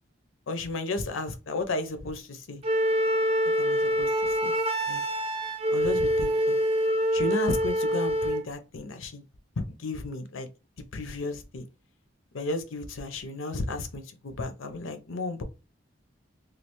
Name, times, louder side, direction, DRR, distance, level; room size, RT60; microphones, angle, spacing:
voice 1, 0.5-2.6 3.6-4.1 4.4-4.5 4.9-5.0 5.7-6.6 7.1-9.2 9.6-10.5 10.9-11.6 12.3-15.4, left 2 dB, 90° left, 0.7 m, -33 dB
Wind instrument woodwind instrument, 2.6-8.5, equal, 30° right, 0.4 m, -25 dB
3.2 x 2.4 x 3.0 m
head